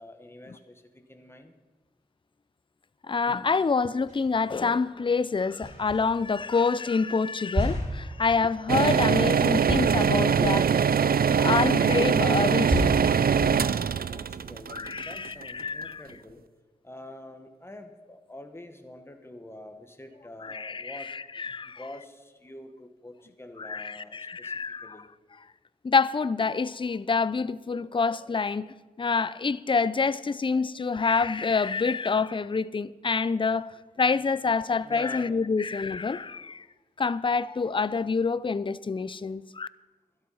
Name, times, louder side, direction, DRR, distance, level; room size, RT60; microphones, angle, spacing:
voice 1, 0.0-1.5 14.1-16.4 16.8-21.1 21.8-25.1 31.0-31.1 34.8-35.4, left 1 dB, 15° left, 1.4 m, -46 dB
voice 2, 3.1-10.7 11.4-13.0 14.7-16.0 20.4-21.8 23.6-25.0 25.8-28.7 29.0-33.7 34.0-36.6 37.0-39.7, left 4 dB, 35° left, 0.4 m, -27 dB
sound 1, 4.1-4.8 5.6-6.5 7.5-12.0 12.7-14.7, equal, 55° right, 5.1 m, -33 dB
sound 2, 8.7-15.6, right 7 dB, 70° right, 0.4 m, -23 dB
12.5 x 11.5 x 5.6 m
wide cardioid pair, 55°, 16 cm